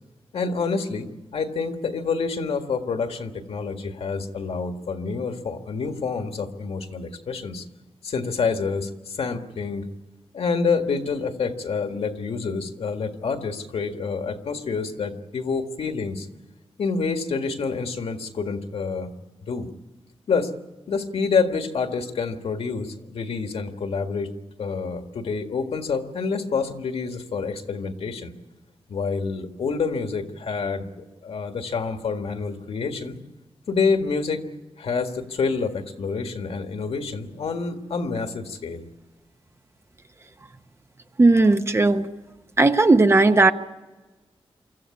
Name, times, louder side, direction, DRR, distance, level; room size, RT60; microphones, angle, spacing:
voice 1, 0.3-7.7 8.0-9.9 10.3-16.3 16.8-19.1 19.5-19.7 20.3-20.5 20.9-24.3 24.6-28.3 28.9-33.2 33.7-34.4 34.8-38.8, left 5 dB, 90° left, 5 dB, 1.8 m, -27 dB
voice 2, 41.2-42.1 42.6-43.5, right 3 dB, 25° right, 8 dB, 0.9 m, -16 dB
25.0 x 14.5 x 8.5 m, 1.2 s
wide cardioid pair, 165°, 10 cm